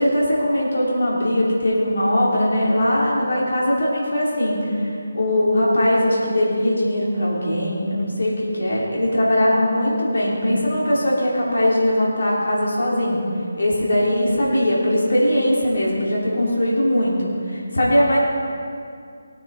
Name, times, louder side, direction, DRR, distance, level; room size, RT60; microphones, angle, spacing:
voice 1, 0.0-4.9 5.1-13.3 13.6-18.2, left 1 dB, 65° left, -4 dB, 3.1 m, -20 dB
17.5 x 9.1 x 4.1 m, 2.4 s
figure-of-eight pair, 150°, 0 cm